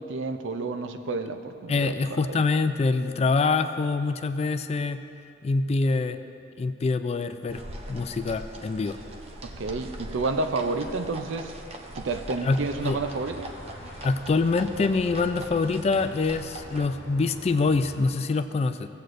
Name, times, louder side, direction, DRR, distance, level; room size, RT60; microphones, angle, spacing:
voice 1, 0.0-2.4 9.4-11.5 11.9-13.5, right 3 dB, 80° right, 8 dB, 0.5 m, -30 dB
voice 2, 1.7-5.0 5.4-6.2 6.6-7.6 7.9-9.0 12.4-12.6 12.8-13.0 14.0-18.9, left 3 dB, 35° left, 10 dB, 0.3 m, -25 dB
sound 1, 7.5-16.9, right 1 dB, 35° right, 0.6 m, -42 dB
sound 2, 12.4-18.1, left 1 dB, 60° left, 1.1 m, -45 dB
16.5 x 7.8 x 2.6 m, 2.6 s
head